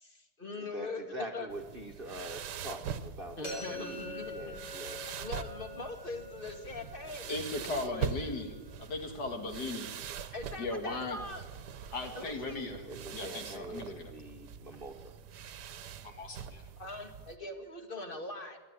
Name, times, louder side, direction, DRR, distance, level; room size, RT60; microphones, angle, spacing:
voice 1, 0.0-1.5 3.4-4.6 5.2-8.4 10.3-11.4 12.1-12.7 16.8-18.6, left 2 dB, 30° left, 5 dB, 2.3 m, -42 dB
voice 2, 0.6-5.0 12.9-14.9, right 1 dB, 35° right, 4 dB, 1.5 m, -44 dB
sound 1, 1.5-17.4, right 7 dB, 75° right, 1.5 m, -43 dB
sound 2, 3.4-9.3, left 2 dB, 85° left, 7.3 m, -47 dB
voice 3, 7.3-8.5 8.8-9.9 10.6-11.2 11.9-12.8 13.1-14.1 16.0-16.6, left 2 dB, 70° left, 5 dB, 2.7 m, -37 dB
24.5 x 11.5 x 9.7 m, 1.3 s
omnidirectional pair, 1.8 m